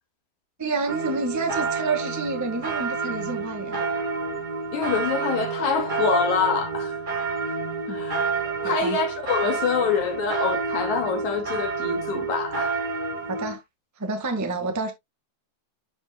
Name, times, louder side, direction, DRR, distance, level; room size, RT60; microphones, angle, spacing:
voice 1, 0.6-3.9 7.9-8.1 8.6-9.0 13.3-13.6 14.0-14.9, right 3 dB, 10° right, 0.9 m, -29 dB
sound 1, 0.9-13.5, right 4 dB, 60° right, 0.5 m, -29 dB
voice 2, 4.7-7.0 7.9-8.2 8.6-12.8, left 5 dB, 75° left, 3.6 m, -25 dB
10.0 x 5.6 x 2.3 m
omnidirectional pair, 3.4 m